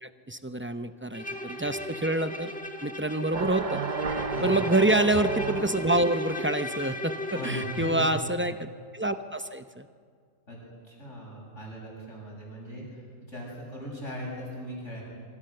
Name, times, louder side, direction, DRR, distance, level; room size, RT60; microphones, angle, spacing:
voice 1, 0.0-2.5 2.8-3.8 4.4-9.9, right 1 dB, 20° right, 9 dB, 0.3 m, -27 dB
Bowed string instrument, 1.1-8.1, equal, 5° left, 1.5 m, -36 dB
sound 1, 3.3-6.2, right 5 dB, 40° right, 0.8 m, -32 dB
voice 2, 7.3-8.1 10.5-10.6 10.9-15.0, equal, 60° left, -2 dB, 7.8 m, -38 dB
26.0 x 24.0 x 6.7 m, 2.1 s
omnidirectional pair, 1.4 m